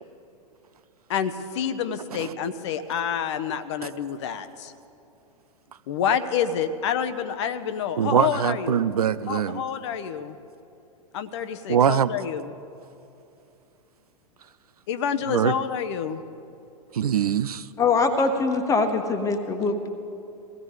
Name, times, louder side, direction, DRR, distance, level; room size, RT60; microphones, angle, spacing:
voice 1, 1.1-4.7 5.9-8.9 9.3-10.4 11.1-12.5 14.9-16.2, left 8 dB, 45° left, 11 dB, 0.8 m, -28 dB
voice 2, 8.0-9.6 11.7-12.1 15.3-15.5 16.9-17.7, right 8 dB, 70° right, 15 dB, 0.5 m, -22 dB
voice 3, 17.8-19.9, left 4 dB, 15° left, 7 dB, 1.2 m, -23 dB
22.0 x 16.5 x 3.2 m, 2.7 s
figure-of-eight pair, 100°, 20 cm